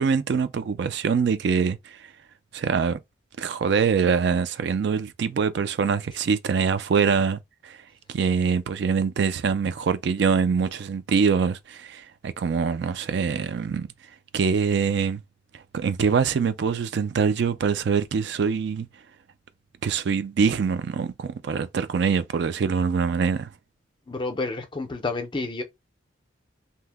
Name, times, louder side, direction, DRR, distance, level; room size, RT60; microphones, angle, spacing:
voice 1, 0.0-2.1 2.5-3.0 3.4-7.8 8.1-13.9 14.3-15.2 15.5-18.9 19.8-23.5, right 6 dB, 60° right, 0.3 m, -24 dB
voice 2, 24.1-25.6, left 3 dB, 25° left, 0.5 m, -29 dB
2.7 x 2.1 x 3.3 m
head